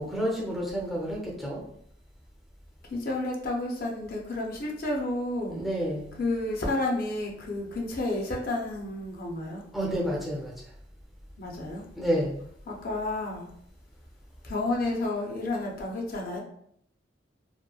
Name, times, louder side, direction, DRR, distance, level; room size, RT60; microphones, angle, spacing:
voice 1, 0.0-1.6 5.5-6.1 9.7-10.5 11.9-12.4, equal, ahead, -4 dB, 0.5 m, -29 dB
voice 2, 2.9-5.6 6.2-9.6 11.4-11.9 12.7-13.5 14.4-16.4, left 2 dB, 50° left, -1 dB, 0.5 m, -31 dB
2.9 x 2.2 x 2.3 m, 0.68 s
head